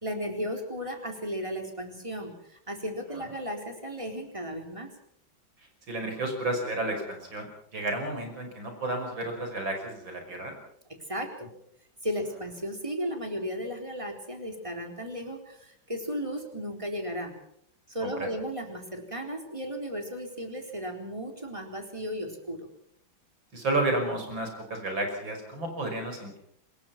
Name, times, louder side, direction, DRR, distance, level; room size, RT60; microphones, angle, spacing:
voice 1, 0.0-4.9 11.1-11.5 12.0-17.3 17.9-22.7, equal, 15° right, 4 dB, 3.9 m, -35 dB
voice 2, 5.9-7.5 7.7-10.5 18.0-18.3 23.5-26.4, right 2 dB, 75° right, 4 dB, 6.4 m, -31 dB
24.5 x 21.0 x 6.0 m, 0.69 s
omnidirectional pair, 2.1 m